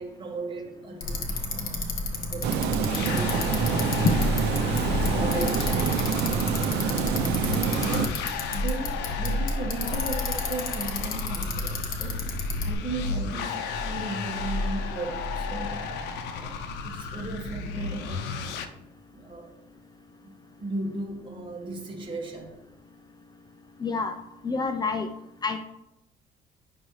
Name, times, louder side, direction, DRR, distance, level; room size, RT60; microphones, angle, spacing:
voice 1, 0.0-1.8 2.3-3.9 4.6-5.8 6.8-8.2 8.5-15.9 16.3-16.6 16.8-18.8 19.1-19.5 20.2-22.5, right 2 dB, 30° right, 0 dB, 2.0 m, -36 dB
Bicycle, 1.0-12.7, left 2 dB, 55° left, 1.5 m, -32 dB
Water, 2.4-8.1, right 7 dB, 85° right, 0.7 m, -26 dB
sound 1, 2.9-18.7, left 3 dB, 85° left, 0.7 m, -32 dB
voice 2, 23.8-24.2 24.4-25.1 25.4-25.6, left 3 dB, 25° left, 7 dB, 0.5 m, -26 dB
9.4 x 6.0 x 3.2 m, 0.87 s
cardioid pair, 110°, 17 cm